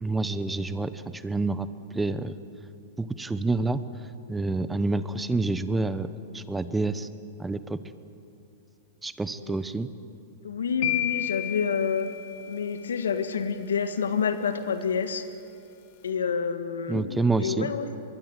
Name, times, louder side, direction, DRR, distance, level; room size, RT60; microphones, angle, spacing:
voice 1, 0.0-1.7 1.9-2.3 3.0-3.8 4.3-7.1 7.4-7.8 9.0-9.9 16.9-17.7, right 3 dB, 10° right, 13 dB, 0.9 m, -28 dB
voice 2, 10.4-12.1 12.5-15.3 16.0-17.9, left 6 dB, 85° left, 9 dB, 1.7 m, -28 dB
sound 1, 10.8-12.9, left 15 dB, 55° left, 1.7 m, -32 dB
24.0 x 21.5 x 8.2 m, 2.6 s
hypercardioid pair, 115°, 0 cm